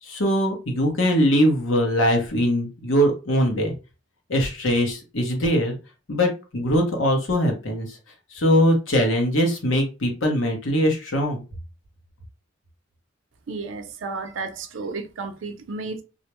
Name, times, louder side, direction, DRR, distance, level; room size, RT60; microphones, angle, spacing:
voice 1, 0.0-3.7 4.3-5.8 6.1-8.0 8.3-11.4, equal, 85° left, 0.9 m, -21 dB
voice 2, 13.5-16.0, right 3 dB, 80° right, 0.5 m, -32 dB
2.4 x 2.1 x 3.0 m
head